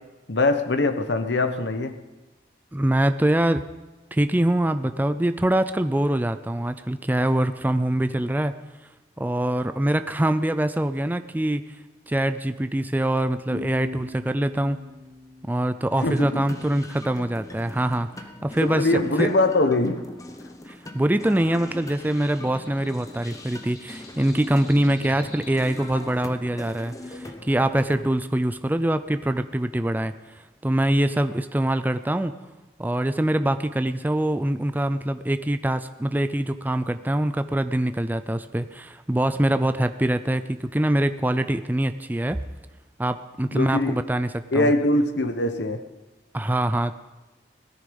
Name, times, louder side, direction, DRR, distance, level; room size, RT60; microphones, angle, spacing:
voice 1, 0.3-2.0 16.0-16.5 18.6-20.0 43.5-44.0 44.5-45.8, left 2 dB, 85° left, 1.1 m, -22 dB
voice 2, 2.7-3.6 4.1-8.6 9.2-11.7 12.1-14.8 15.4-19.3 20.7-32.4 32.8-42.4 43.0-44.7 46.3-47.0, right 1 dB, 10° right, 0.5 m, -24 dB
sound 1, 13.5-16.9, left 2 dB, 65° right, 5.8 m, -39 dB
sound 2, 15.9-28.1, left 1 dB, 20° left, 1.0 m, -41 dB
sound 3, 21.2-26.1, left 2 dB, 55° left, 6.9 m, -47 dB
17.5 x 13.5 x 5.3 m
head